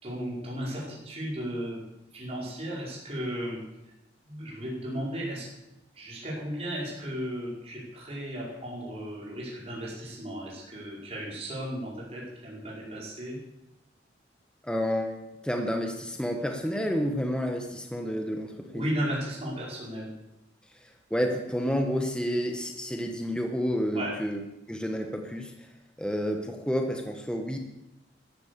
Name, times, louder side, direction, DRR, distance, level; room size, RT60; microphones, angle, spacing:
voice 1, 0.0-1.8 2.1-3.6 4.3-5.5 5.9-13.4 18.7-20.1 23.9-24.2, equal, 35° right, -5 dB, 5.2 m, -35 dB
voice 2, 14.6-15.1 15.4-18.9 20.8-24.4 24.7-25.7 26.0-27.6, equal, 5° left, 4 dB, 1.3 m, -30 dB
13.5 x 13.0 x 7.0 m, 0.92 s
head